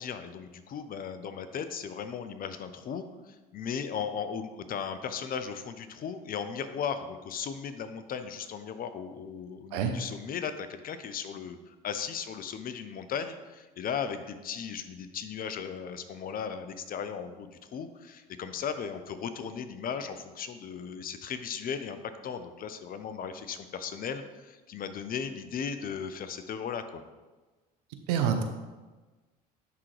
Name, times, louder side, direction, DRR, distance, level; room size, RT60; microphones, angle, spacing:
voice 1, 0.0-22.0 22.2-27.0, left 7 dB, 45° left, 10 dB, 0.7 m, -36 dB
voice 2, 28.1-28.4, right 8 dB, 85° right, 6 dB, 0.8 m, -26 dB
10.5 x 3.8 x 3.3 m, 1.2 s
supercardioid pair, 75°, 20 cm